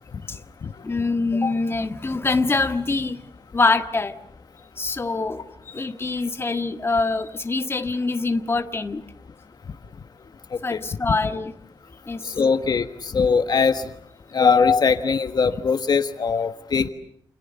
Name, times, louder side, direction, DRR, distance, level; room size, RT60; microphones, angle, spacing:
voice 1, 0.8-3.3 3.5-4.2 4.8-9.0 10.6-11.5 12.1-12.3, left 3 dB, 30° left, 8 dB, 1.6 m, -24 dB
voice 2, 12.2-13.8 14.3-16.9, left 5 dB, 55° left, 9 dB, 1.3 m, -21 dB
29.0 x 28.5 x 7.0 m, 0.66 s
wide cardioid pair, 140°, 8 cm